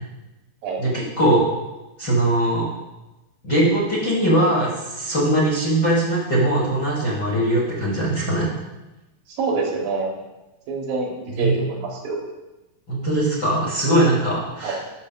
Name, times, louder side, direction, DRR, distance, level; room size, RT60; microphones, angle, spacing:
voice 1, 0.8-1.5 2.0-2.7 3.4-8.5 11.4-11.6 12.9-14.8, right 1 dB, 50° left, -6 dB, 1.3 m, -20 dB
voice 2, 9.4-10.1 10.7-12.2 14.6-14.8, right 3 dB, 75° right, 0 dB, 2.8 m, -26 dB
12.5 x 6.4 x 2.2 m, 1.0 s
omnidirectional pair, 4.2 m